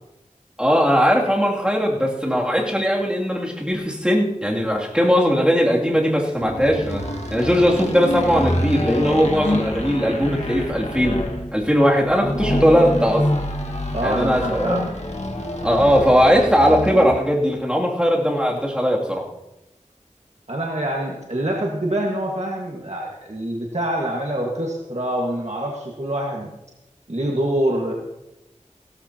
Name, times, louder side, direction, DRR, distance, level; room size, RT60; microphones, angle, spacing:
voice 1, 0.6-7.0 7.3-11.2 11.5-13.4 14.0-14.8 15.6-19.3, equal, 5° right, -2 dB, 2.7 m, -19 dB
sound 1, 6.4-17.2, left 1 dB, 60° left, 1.7 m, -27 dB
voice 2, 13.9-14.9 20.5-26.5 27.1-27.9, right 1 dB, 60° right, -2 dB, 1.7 m, -25 dB
16.5 x 13.5 x 2.9 m, 0.93 s
wide cardioid pair, 40°, 13 cm